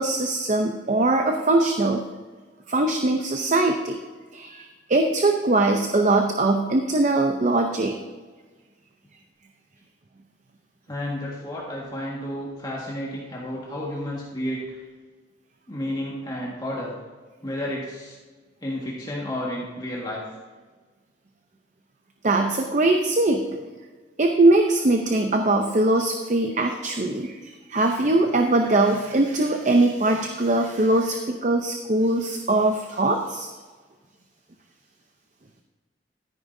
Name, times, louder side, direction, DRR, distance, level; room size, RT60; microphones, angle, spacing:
voice 1, 0.0-2.1 2.7-4.0 4.3-8.0 22.2-23.4 24.2-33.5, right 2 dB, 45° right, 4 dB, 0.7 m, -21 dB
voice 2, 10.9-14.8 15.7-16.9 17.4-18.2 18.6-20.2, left 1 dB, 25° left, -5 dB, 1.7 m, -31 dB
13.0 x 10.0 x 2.7 m, 1.4 s
head